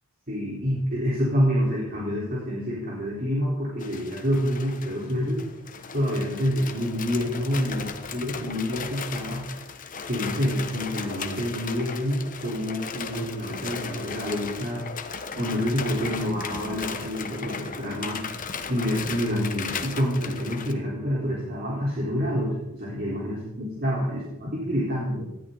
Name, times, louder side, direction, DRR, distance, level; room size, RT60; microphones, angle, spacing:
voice 1, 0.3-5.4 5.9-9.5 10.1-14.9 15.4-18.2 18.7-25.2, equal, 45° right, -6 dB, 4.2 m, -27 dB
sound 1, 3.8-20.7, left 5 dB, 40° left, 1.2 m, -36 dB
19.5 x 13.5 x 4.0 m, 0.91 s
head